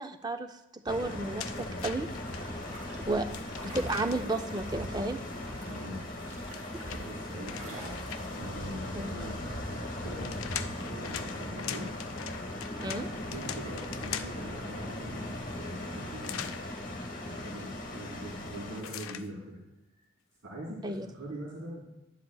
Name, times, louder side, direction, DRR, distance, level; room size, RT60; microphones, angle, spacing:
voice 1, 0.0-2.1 2.4-2.5 3.1-3.3 3.6-5.2 9.0-9.1 12.8-13.1 20.8-21.1, right 2 dB, 20° right, 7 dB, 0.4 m, -32 dB
sound 1, 0.9-18.8, left 1 dB, 40° left, 1.2 m, -39 dB
sound 2, 1.4-2.4 3.3-4.4 6.2-8.5 9.9-14.5 16.2-16.6 18.8-19.3, left 9 dB, 70° left, 0.5 m, -41 dB
sound 3, 2.2-9.8, equal, 35° right, 1.9 m, -45 dB
voice 2, 5.6-6.0 6.9-8.0 8.3-12.0 13.0-16.6 17.2-19.6 20.4-21.8, right 1 dB, 65° right, -5 dB, 3.1 m, -43 dB
12.0 x 10.5 x 2.3 m, 0.97 s
head